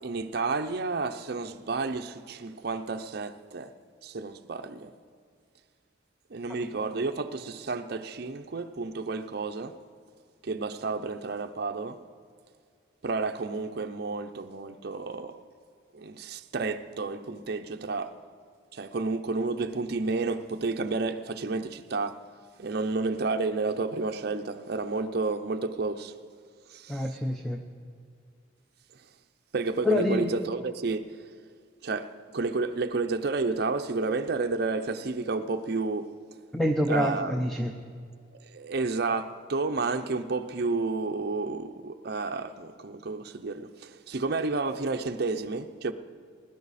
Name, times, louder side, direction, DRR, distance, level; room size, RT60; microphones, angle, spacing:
voice 1, 0.0-3.7 4.0-4.9 6.3-9.8 10.4-12.0 13.0-15.4 15.9-18.2 18.7-22.2 22.6-26.1 26.7-27.1 29.5-31.2 31.8-36.1 36.9-37.4 38.3-45.9, right 3 dB, 55° right, 0.6 m, -31 dB
voice 2, 26.9-27.6 29.8-30.3 36.5-37.7, left 1 dB, ahead, 0.6 m, -26 dB
20.5 x 11.5 x 4.2 m
head